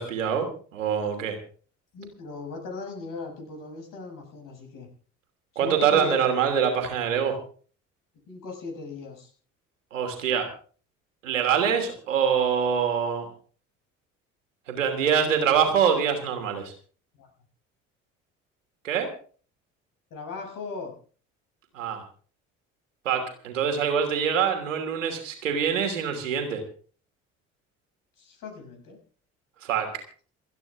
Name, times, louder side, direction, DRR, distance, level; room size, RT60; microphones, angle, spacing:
voice 1, 0.0-1.4 5.6-7.4 9.9-10.5 11.2-13.3 14.7-16.7 18.8-19.1 21.7-22.0 23.0-26.6 29.6-30.0, right 7 dB, 80° right, 4 dB, 3.0 m, -25 dB
voice 2, 1.9-4.9 5.5-6.2 8.3-9.3 15.2-15.3 17.1-17.3 20.1-20.9 28.2-29.0, left 3 dB, 55° left, 2 dB, 6.7 m, -38 dB
27.5 x 9.8 x 3.6 m, 0.41 s
figure-of-eight pair, 50°, 38 cm